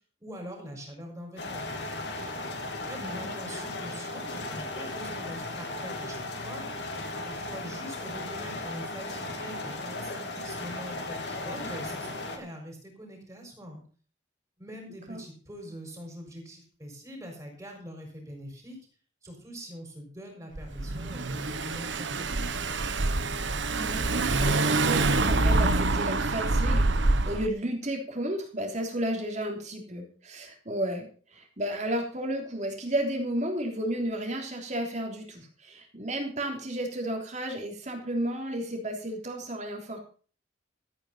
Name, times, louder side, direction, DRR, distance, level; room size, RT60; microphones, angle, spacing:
voice 1, 0.2-2.1 2.9-6.6 7.2-13.8 14.6-18.8 19.2-22.6, equal, 15° right, 2 dB, 4.7 m, -43 dB
sound 1, 1.4-12.4, left 2 dB, 55° left, 2.5 m, -36 dB
voice 2, 3.0-3.3 15.1-15.2 23.7-40.0, right 1 dB, 35° right, 2 dB, 3.3 m, -33 dB
Car / Engine, 20.6-27.5, right 2 dB, 70° right, 1.1 m, -26 dB
13.5 x 9.1 x 5.6 m, 0.40 s
head